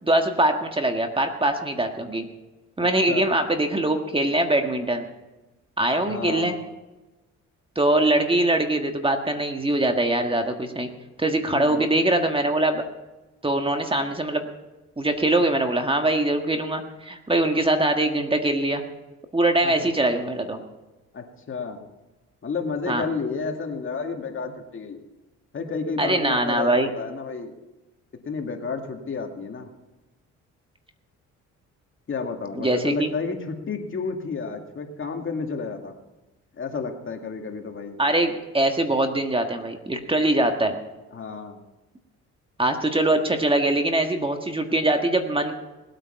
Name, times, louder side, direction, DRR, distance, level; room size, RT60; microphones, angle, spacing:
voice 1, 0.0-2.2 2.8-5.0 5.8-6.5 7.7-10.9 11.2-12.8 13.4-14.4 15.0-18.8 19.3-20.6 22.9-23.0 26.0-26.9 32.5-33.1 38.0-40.8 42.6-45.5, right 1 dB, 15° right, 5 dB, 1.6 m, -22 dB
voice 2, 6.1-6.6 11.5-11.8 19.6-19.9 21.1-21.8 22.4-25.0 25.5-27.5 28.3-29.7 32.1-35.9 36.5-38.0 38.3-38.4 41.1-41.6, left 4 dB, 45° left, 3 dB, 2.2 m, -31 dB
19.5 x 8.9 x 5.8 m, 1.1 s
cardioid pair, 90°, 30 cm